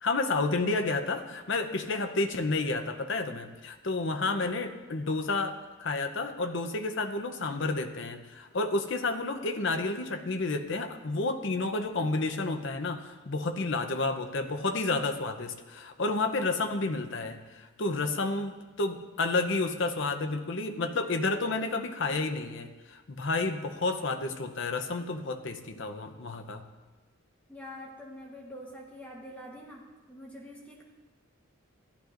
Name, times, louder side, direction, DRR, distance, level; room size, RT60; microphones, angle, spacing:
voice 1, 0.0-26.6, left 3 dB, 60° left, 7 dB, 0.8 m, -30 dB
voice 2, 27.5-29.8 30.1-30.8, equal, 5° left, -3 dB, 1.2 m, -45 dB
14.5 x 11.0 x 2.6 m, 1.3 s
head